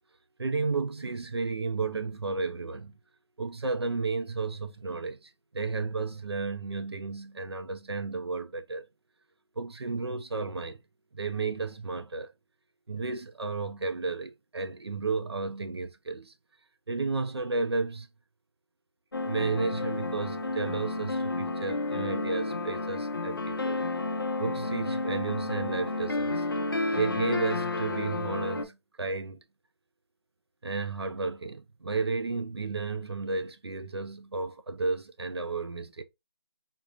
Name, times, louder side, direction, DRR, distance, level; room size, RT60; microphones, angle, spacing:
voice 1, 0.4-2.9 3.4-8.8 9.6-10.8 11.1-12.3 12.9-16.3 16.9-18.1 19.2-23.8 24.4-26.5 26.9-29.4 30.6-36.0, right 4 dB, 65° right, 0.6 m, -32 dB
sound 1, 19.1-28.6, left 2 dB, 50° left, 0.5 m, -31 dB
3.8 x 2.5 x 2.7 m
figure-of-eight pair, 180°, 15 cm